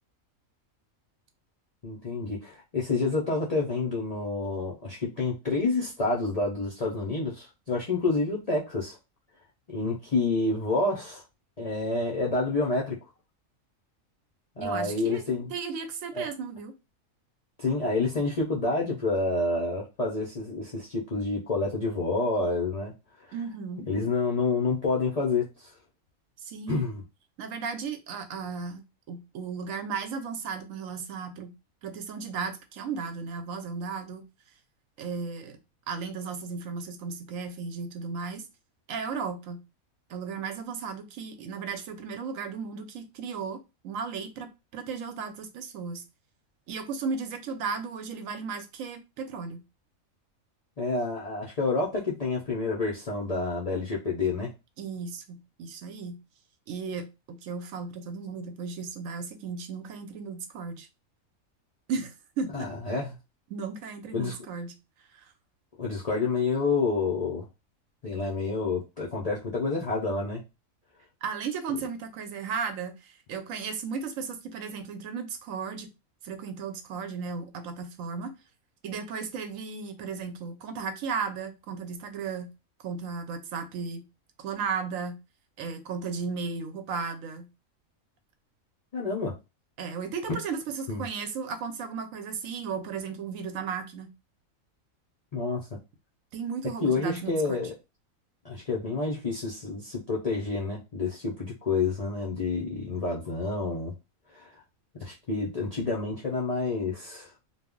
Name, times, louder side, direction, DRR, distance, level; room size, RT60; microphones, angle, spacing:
voice 1, 1.8-9.0 9.7-11.2 11.6-13.0 14.6-15.5 16.1-16.3 17.6-22.9 23.2-23.3 23.9-25.7 26.7-27.0 50.8-54.5 62.5-63.2 64.1-64.3 65.8-67.5 68.0-70.4 88.9-89.3 90.9-91.1 95.3-95.8 96.8-97.7 98.4-103.9 104.3-104.6 105.0-107.3, left 3 dB, 55° left, 0.4 m, -28 dB
voice 2, 14.6-15.2 15.5-16.7 23.3-23.9 26.4-26.9 27.4-31.5 31.8-34.2 35.0-35.6 35.9-38.4 38.9-39.6 40.1-46.0 46.7-49.6 54.8-56.2 56.7-60.9 61.9-62.7 63.5-64.8 65.1-65.3 71.2-75.9 76.2-78.3 78.8-82.5 82.8-84.1 84.4-85.2 85.6-87.5 89.8-94.1 96.3-97.6, right 5 dB, 75° right, 0.9 m, -35 dB
2.3 x 2.0 x 3.5 m
omnidirectional pair, 1.4 m